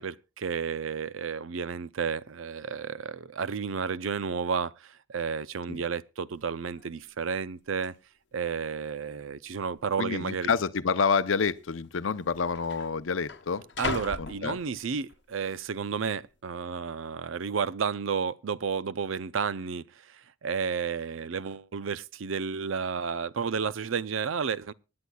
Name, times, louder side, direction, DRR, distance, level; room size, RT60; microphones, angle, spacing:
voice 1, 0.0-7.9 8.3-10.5 13.8-24.7, right 6 dB, 85° right, 0.5 m, -32 dB
sound 1, 6.4-6.5 6.7-7.1 7.8-7.9 8.7-9.2 9.5-9.6 10.4-10.6 11.6-11.7 11.9-15.2 15.6-16.1, left 4 dB, 60° left, 0.9 m, -39 dB
voice 2, 10.0-13.6 14.2-14.6, left 5 dB, 85° left, 0.6 m, -28 dB
24.5 x 9.6 x 2.3 m
head